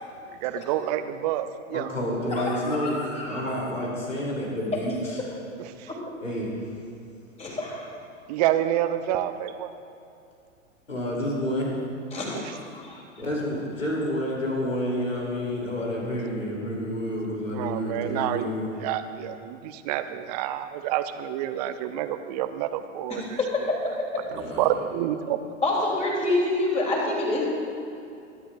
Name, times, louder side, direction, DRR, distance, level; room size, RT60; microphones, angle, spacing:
voice 1, 0.4-1.9 5.6-5.9 8.3-9.7 12.3-12.5 17.5-23.4 24.6-25.4, right 12 dB, 30° right, 11 dB, 0.6 m, -28 dB
voice 2, 1.7-3.0 3.3-5.2 6.2-6.5 10.9-11.6 13.2-18.7 24.3-24.8, left 1 dB, 80° left, -3 dB, 3.3 m, -29 dB
voice 3, 2.3-3.4 4.7-4.8 5.9-6.0 7.4-7.9 12.1-12.9 23.1-24.2 25.6-27.4, left 2 dB, 15° left, -3 dB, 3.3 m, -27 dB
24.5 x 11.5 x 2.6 m, 2.6 s
figure-of-eight pair, 100°, 39 cm